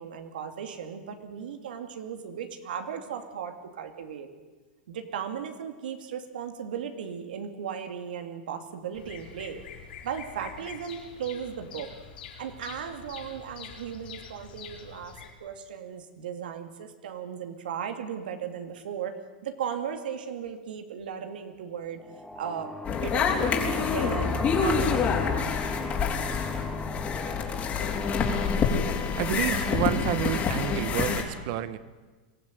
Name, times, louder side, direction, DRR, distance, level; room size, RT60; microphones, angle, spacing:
voice 1, 0.0-4.3 4.9-9.6 10.0-11.9 12.4-22.0 22.4-25.2, right 8 dB, 85° right, 6 dB, 2.5 m, -36 dB
Bird vocalization bird call bird song, 8.9-15.3, left 7 dB, 80° left, 4.6 m, -45 dB
sound 1, 22.0-29.4, left 1 dB, 5° left, 1.0 m, -38 dB
sound 2, 22.8-31.2, left 5 dB, 30° left, 3.9 m, -27 dB
voice 2, 29.2-31.8, right 13 dB, 55° right, 14 dB, 1.3 m, -29 dB
23.5 x 15.0 x 9.3 m, 1.3 s
hypercardioid pair, 125°, 5 cm